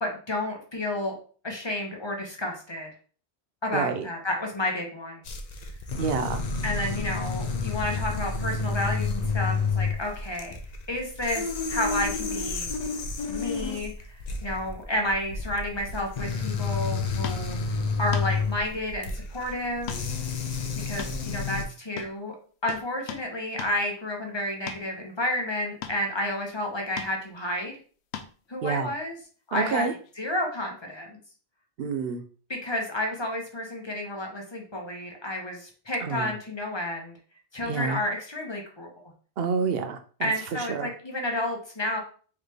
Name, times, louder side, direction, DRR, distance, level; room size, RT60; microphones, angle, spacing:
voice 1, 0.0-1.2 1.4-2.9 3.6-5.2 6.6-10.6 10.9-12.7 13.3-17.6 18.0-19.9 20.7-22.4 22.6-27.7 28.5-29.2 29.5-29.9 30.2-31.2 32.5-37.1 37.5-38.9 40.2-42.0, left 1 dB, 25° left, 1 dB, 0.9 m, -31 dB
voice 2, 3.7-4.0 6.0-6.4 28.6-28.9 29.5-29.9 31.8-32.2 36.0-36.3 37.7-38.0 39.4-40.3 40.7-40.9, right 5 dB, 70° right, 7 dB, 0.8 m, -28 dB
sound 1, 5.2-21.6, left 4 dB, 50° left, 0.6 m, -30 dB
sound 2, 17.2-17.5 18.1-18.3 19.9-20.1 20.3-20.5 21.0-21.7 22.0-22.2 22.7-23.3 23.6-23.8 24.7-24.9 25.8-26.0 27.0-27.1 28.1-28.4 30.0-30.1, left 8 dB, 90° left, 0.8 m, -38 dB
3.9 x 3.2 x 3.3 m, 0.41 s
omnidirectional pair, 1.1 m